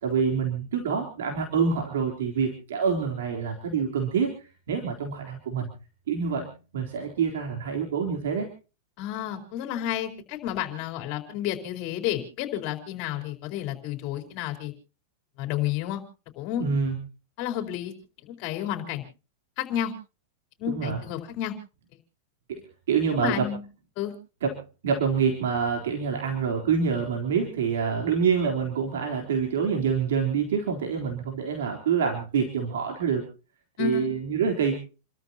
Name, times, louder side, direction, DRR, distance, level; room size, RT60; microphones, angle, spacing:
voice 1, 0.0-4.3 4.7-5.7 6.1-8.5 16.6-16.9 20.7-21.0 22.5-22.6 22.9-23.5 24.4-33.2 33.8-34.8, right 6 dB, 85° right, 1 dB, 3.8 m, -26 dB
voice 2, 9.0-14.7 15.4-16.0 16.4-16.6 17.4-17.9 18.2-19.0 19.6-19.9 20.6-21.5 23.1-23.6 24.0-24.1 33.8-34.1, left 11 dB, 45° left, 5 dB, 4.4 m, -31 dB
29.5 x 13.5 x 2.9 m, 0.34 s
supercardioid pair, 140°, 0 cm